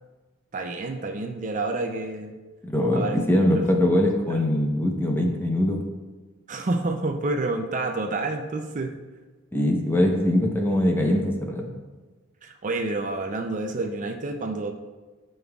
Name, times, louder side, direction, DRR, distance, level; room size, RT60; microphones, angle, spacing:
voice 1, 0.5-2.3 2.9-3.2 6.5-8.9 12.4-14.7, right 2 dB, 40° right, 5 dB, 0.4 m, -28 dB
voice 2, 2.6-5.8 9.5-11.7, left 1 dB, 10° left, 1 dB, 0.8 m, -22 dB
13.0 x 5.5 x 2.3 m, 1.3 s
head